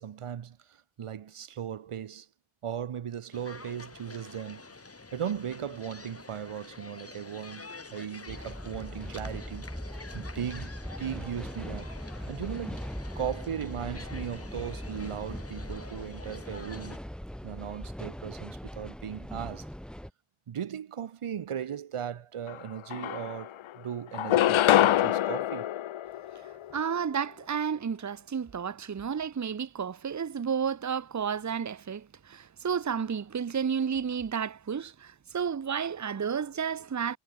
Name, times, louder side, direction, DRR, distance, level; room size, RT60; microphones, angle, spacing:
voice 1, 0.0-2.3 2.6-9.7 10.1-11.9 12.3-17.0 17.4-19.7 20.5-25.7, right 9 dB, 90° right, 2.7 m, -37 dB
sound 1, 3.3-17.0, left 3 dB, 30° left, 5.3 m, -48 dB
sound 2, 8.3-20.1, equal, ahead, 4.4 m, -40 dB
sound 3, 22.5-22.6 22.9-23.7 24.1-26.7, left 12 dB, 70° left, 0.7 m, -25 dB
voice 2, 26.7-37.2, right 7 dB, 35° right, 1.0 m, -31 dB
wide cardioid pair, 140°, 50 cm